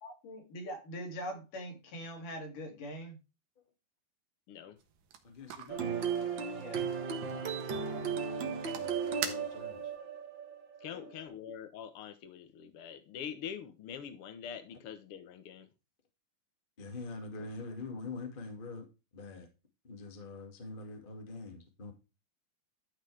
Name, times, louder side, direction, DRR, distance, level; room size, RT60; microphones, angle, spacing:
voice 1, 0.0-3.2 6.6-6.8 10.9-11.3, equal, 55° left, 4.4 m, -43 dB
voice 2, 4.5-4.8 10.8-15.7, left 8 dB, 90° left, 1.2 m, -44 dB
sound 1, 4.8-10.0, right 9 dB, 65° right, 2.7 m, -46 dB
voice 3, 5.2-5.9 7.3-7.6 7.9-9.9 16.8-18.9 19.1-19.5 19.8-21.9, left 3 dB, 20° left, 1.7 m, -45 dB
sound 2, 5.7-11.2, right 6 dB, 85° right, 1.0 m, -35 dB
13.0 x 6.1 x 3.4 m
omnidirectional pair, 4.5 m